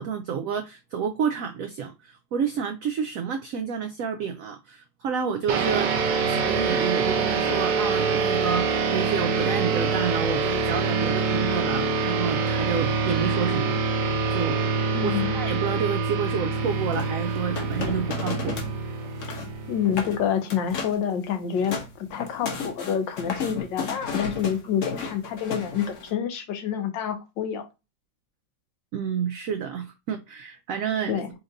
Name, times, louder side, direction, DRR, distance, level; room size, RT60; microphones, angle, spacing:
voice 1, 0.0-5.9 6.3-13.8 14.3-14.7 15.0-18.6 28.9-31.2, right 7 dB, 90° right, 0.7 m, -29 dB
sound 1, 5.5-20.3, right 4 dB, 75° right, 1.4 m, -25 dB
voice 2, 14.9-15.4 19.7-27.6 31.1-31.3, left 8 dB, 80° left, 1.5 m, -28 dB
sound 2, 16.9-18.8 19.0-19.5 19.9-20.2 20.5-21.0 21.4-26.1, left 5 dB, 50° left, 1.1 m, -33 dB
4.4 x 2.5 x 3.9 m
omnidirectional pair, 2.0 m